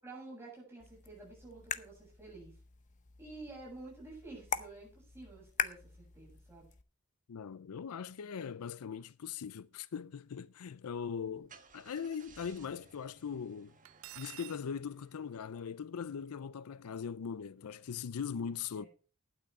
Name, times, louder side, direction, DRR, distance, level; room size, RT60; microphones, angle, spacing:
voice 1, 0.0-2.5 3.2-6.7 18.7-18.9, right 2 dB, 10° right, 7.6 m, -50 dB
sound 1, 0.8-6.8, left 7 dB, 35° left, 0.7 m, -42 dB
voice 2, 7.3-13.7 14.2-18.9, left 7 dB, 90° left, 0.5 m, -40 dB
Car / Engine starting, 11.1-15.8, right 4 dB, 35° right, 1.5 m, -61 dB
Cutlery silverware, 13.8-14.6, right 14 dB, 65° right, 0.5 m, -48 dB
12.0 x 9.2 x 4.8 m
head